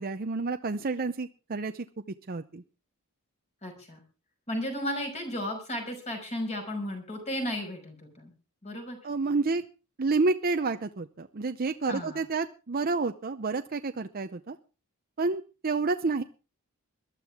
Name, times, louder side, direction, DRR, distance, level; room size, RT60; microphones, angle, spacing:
voice 1, 0.0-1.9 2.3-2.6 9.0-9.6 10.0-14.6 15.2-16.2, right 3 dB, 45° right, 7 dB, 0.6 m, -29 dB
voice 2, 3.6-4.0 4.5-8.3 8.6-9.0 11.9-12.2, left 1 dB, 30° left, 3 dB, 5.7 m, -34 dB
22.0 x 12.5 x 3.6 m, 0.33 s
head